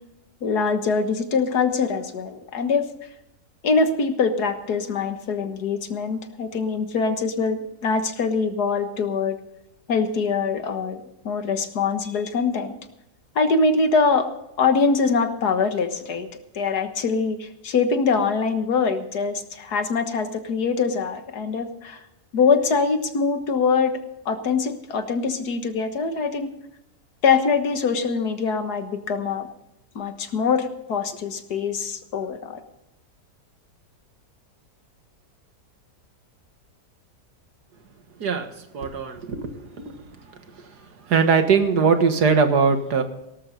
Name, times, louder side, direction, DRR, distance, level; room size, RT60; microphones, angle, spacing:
voice 1, 0.4-2.9 3.6-9.4 9.9-12.8 13.4-14.3 14.6-16.3 16.5-22.0 22.3-24.0 24.3-26.6 27.2-29.5 30.0-32.6, left 4 dB, 75° left, 8 dB, 2.0 m, -23 dB
voice 2, 38.2-40.0 40.6-40.7 41.1-43.0, right 5 dB, 90° right, 7 dB, 2.1 m, -21 dB
18.0 x 13.5 x 4.0 m, 0.87 s
omnidirectional pair, 1.7 m